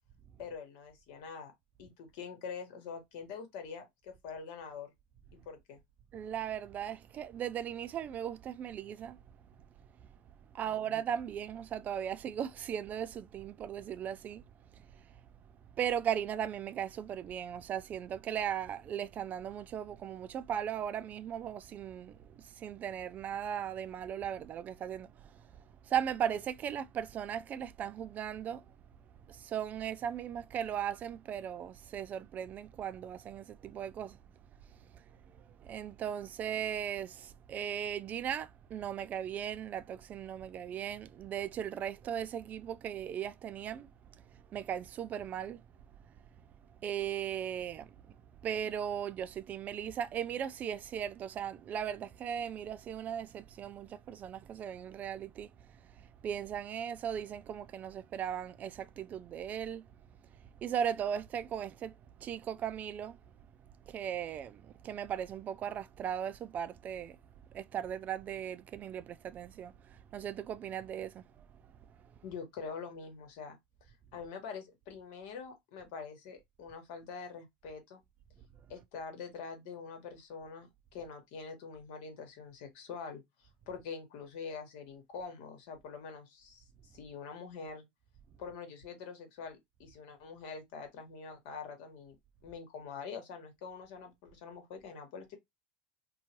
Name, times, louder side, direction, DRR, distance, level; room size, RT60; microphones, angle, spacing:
voice 1, 0.4-1.5 1.8-4.9 5.3-5.8 10.6-10.9 72.2-73.6 74.1-78.0 78.7-87.9 88.4-92.2 92.4-95.4, left 5 dB, 65° left, 1.3 m, -45 dB
voice 2, 6.1-9.2 10.0-10.1 10.5-14.4 14.7-15.2 15.8-28.8 29.3-34.2 34.8-45.6 46.1-46.2 46.8-48.0 48.4-59.9 60.6-63.2 63.9-67.2 67.5-71.5, right 9 dB, 35° right, 0.3 m, -38 dB
2.8 x 2.3 x 2.9 m
supercardioid pair, 115°, 5 cm